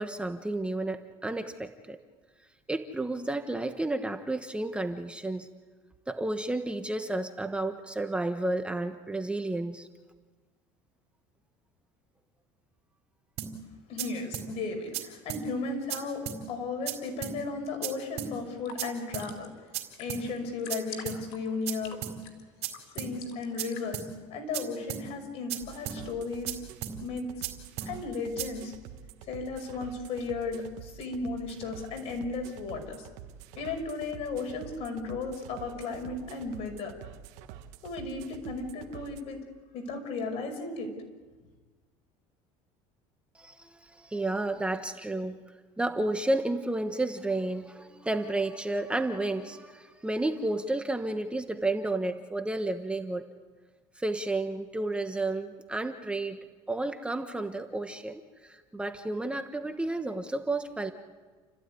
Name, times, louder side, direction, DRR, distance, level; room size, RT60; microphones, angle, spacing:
voice 1, 0.0-2.0 2.7-5.5 6.1-9.9 43.3-45.4 45.8-53.3 54.0-56.4 56.7-60.9, right 2 dB, 10° right, 6 dB, 1.2 m, -31 dB
sound 1, 13.4-13.5 14.0-14.1 14.3-14.5 14.9-15.0 15.3-15.4 15.9-16.0 16.3-16.4 16.9-17.0 17.2-17.4 17.8-17.9 18.2-18.3 18.8-18.9 19.1-19.3 19.7-19.8 20.1-20.2 20.7-20.8 21.1-21.2 21.7-21.8 22.0-22.2 22.6-22.7 23.0-23.1 23.6-23.7 23.9-24.1 24.5-24.6 24.9-25.0 25.5-25.6 25.9-26.0 26.5-26.6 26.8-27.0 27.4-27.5 27.8-27.9 28.4-28.5, right 11 dB, 60° right, 4.2 m, -34 dB
voice 2, 13.9-19.5 20.0-22.0 22.9-24.0 24.3-26.6 27.0-27.3 27.9-28.7 29.3-33.1 33.5-36.9 37.8-39.4 39.7-40.9, left 3 dB, 55° left, 5 dB, 5.7 m, -35 dB
sound 2, 18.3-23.9, left 6 dB, 85° left, 4.4 m, -48 dB
sound 3, 25.6-39.2, right 9 dB, 75° right, 1.5 m, -47 dB
29.5 x 15.0 x 9.7 m, 1.4 s
supercardioid pair, 120°, 12 cm